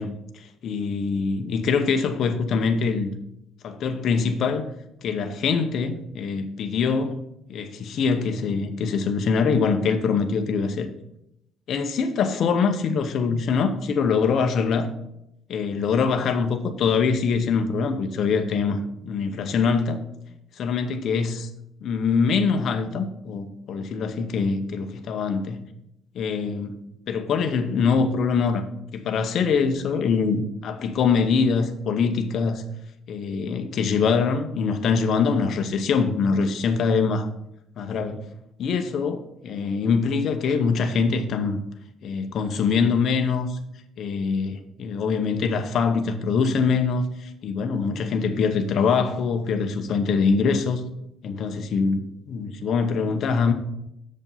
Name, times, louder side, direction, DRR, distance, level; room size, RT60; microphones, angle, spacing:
voice 1, 0.0-3.1 3.6-4.6 5.0-7.2 7.5-10.9 11.7-14.9 15.5-20.1 20.6-21.5 21.8-25.6 26.1-26.8 27.1-28.6 28.9-32.6 33.1-37.3 37.8-38.3 38.6-41.6 42.0-43.6 44.0-50.9 51.2-53.5, left 5 dB, 55° left, 0.8 m, -24 dB
6.8 x 5.2 x 5.5 m
cardioid pair, 125°, 0 cm